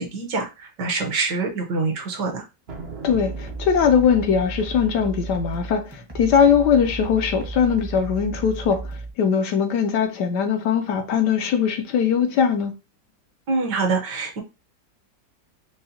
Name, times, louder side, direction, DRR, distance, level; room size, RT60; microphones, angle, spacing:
voice 1, 0.0-2.4 13.5-14.4, right 3 dB, 70° right, 1.6 m, -25 dB
sound 1, 2.7-4.4, right 4 dB, 55° right, 0.7 m, -39 dB
voice 2, 3.0-12.7, left 7 dB, 70° left, 1.1 m, -20 dB
sound 2, 3.1-9.1, right 3 dB, 20° right, 0.7 m, -34 dB
5.4 x 2.1 x 2.7 m
omnidirectional pair, 2.0 m